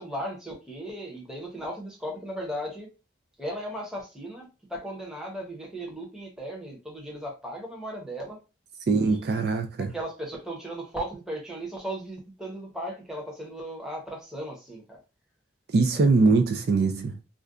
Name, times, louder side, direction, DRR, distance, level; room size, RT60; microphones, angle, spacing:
voice 1, 0.0-2.9 3.4-8.4 9.0-9.4 9.8-15.0 15.9-16.1, right 1 dB, 5° right, 0.7 m, -36 dB
voice 2, 8.9-9.9 15.7-17.1, right 3 dB, 55° right, 0.3 m, -22 dB
2.5 x 2.2 x 3.5 m
head